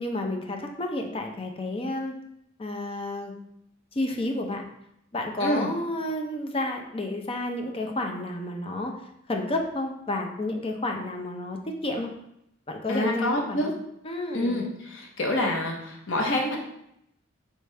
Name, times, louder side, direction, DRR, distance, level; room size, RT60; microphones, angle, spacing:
voice 1, 0.0-2.1 2.6-3.3 3.9-4.6 5.1-8.9 9.3-12.1 12.7-13.7 14.0-14.6, left 1 dB, 30° left, 3 dB, 0.5 m, -30 dB
voice 2, 12.9-13.7 14.3-16.6, left 1 dB, 70° left, 1 dB, 0.8 m, -27 dB
4.9 x 3.2 x 3.3 m, 0.78 s
head